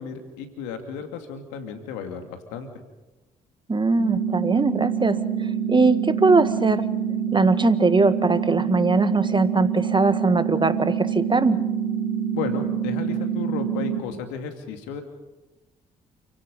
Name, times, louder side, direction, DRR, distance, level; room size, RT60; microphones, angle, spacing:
voice 1, 0.0-2.7 12.3-15.0, left 6 dB, 80° left, 6 dB, 2.5 m, -34 dB
voice 2, 3.7-5.2 5.7-6.8 7.3-11.6, right 3 dB, 25° right, 12 dB, 1.7 m, -20 dB
sound 1, 4.0-14.0, right 8 dB, 80° right, 3.9 m, -26 dB
29.5 x 16.5 x 5.4 m, 1.1 s
hypercardioid pair, 45°, 19 cm